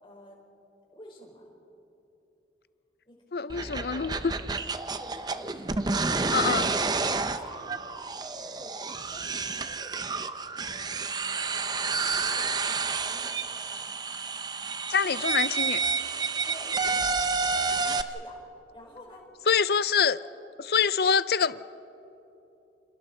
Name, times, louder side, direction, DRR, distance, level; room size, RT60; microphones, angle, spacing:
voice 1, 0.0-0.4 0.9-1.4 3.0-3.2 3.4-5.8 6.1-6.8 7.1-8.0 8.3-10.4 10.7-11.4 12.1-13.3 16.5-16.8 18.0-18.4 18.7-19.3 20.2-20.3, equal, 30° left, -1 dB, 4.8 m, -50 dB
voice 2, 3.3-4.3 6.3-6.7 14.9-15.8 19.5-20.2 20.7-21.6, left 6 dB, 60° left, 16 dB, 0.5 m, -25 dB
sound 1, 3.5-18.0, right 4 dB, 25° right, 0.6 m, -30 dB
29.0 x 28.5 x 4.4 m, 3.0 s
head